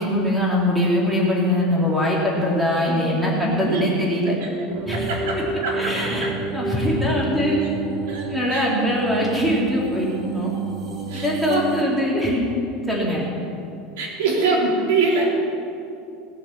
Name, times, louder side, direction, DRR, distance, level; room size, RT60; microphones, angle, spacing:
voice 1, 0.0-4.3 4.8-5.4 5.7-7.6 8.3-10.1 10.3-10.5 11.1-12.5 12.8-13.3, left 1 dB, 5° right, -5 dB, 2.8 m, -22 dB
voice 2, 2.9-3.8 4.9-5.9 6.2-6.3 8.1-8.3 8.5-8.7 11.1-11.6 14.0-15.4, right 3 dB, 90° right, -2 dB, 3.8 m, -24 dB
sound 1, 4.7-11.8, right 4 dB, 30° right, 1.6 m, -30 dB
19.0 x 7.2 x 7.2 m, 2.6 s
supercardioid pair, 165°, 0 cm